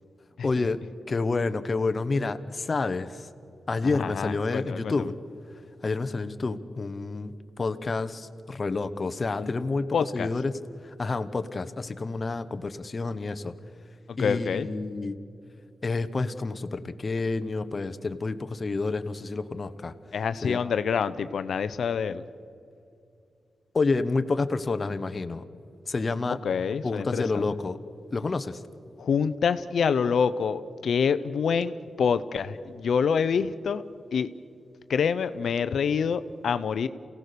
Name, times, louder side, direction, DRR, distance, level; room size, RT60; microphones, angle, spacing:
voice 1, 0.4-3.3 3.7-5.1 5.8-10.5 10.8-13.5 14.2-15.1 15.8-19.9 20.4-20.6 23.7-25.4 25.9-26.4 26.8-27.8 28.1-28.6, left 3 dB, 35° left, 10 dB, 0.9 m, -29 dB
voice 2, 3.8-5.1 9.4-9.5 9.9-10.3 14.1-14.7 20.1-22.2 26.4-27.5 29.0-33.8 34.1-34.3 34.9-36.9, left 6 dB, 75° left, 13 dB, 0.7 m, -26 dB
28.5 x 17.0 x 6.8 m, 2.5 s
wide cardioid pair, 110°, 0 cm